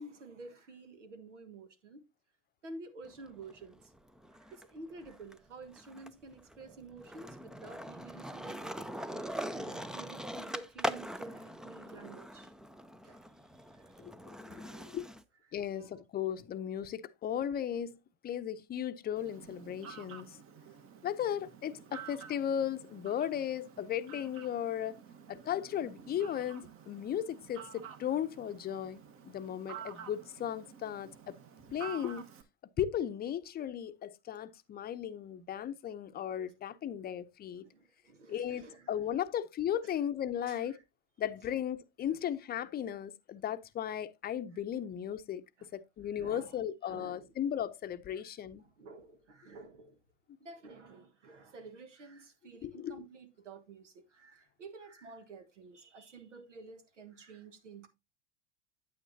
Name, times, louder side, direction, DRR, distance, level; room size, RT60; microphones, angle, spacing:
voice 1, 0.0-2.0 2.6-3.9 4.3-12.5 13.0-14.0 14.5-15.0 15.7-16.0 37.6-39.2 39.8-39.9 40.5-40.8 45.6-45.7 46.2-46.6 46.8-47.3 48.1-48.2 48.6-50.0 50.4-57.9, right 3 dB, 85° right, 1.4 m, -51 dB
Skateboard, 3.1-4.6 5.0-15.2, equal, ahead, 0.4 m, -42 dB
voice 2, 14.5-15.1 15.5-20.4 21.0-24.9 25.3-31.4 31.7-32.3 32.8-37.6 38.3-40.8 41.2-45.4 45.7-48.6 52.6-53.0, left 10 dB, 25° left, 0.7 m, -36 dB
Fowl, 19.2-32.4, right 8 dB, 40° right, 1.3 m, -50 dB
9.0 x 8.6 x 2.7 m
hypercardioid pair, 85°, 35 cm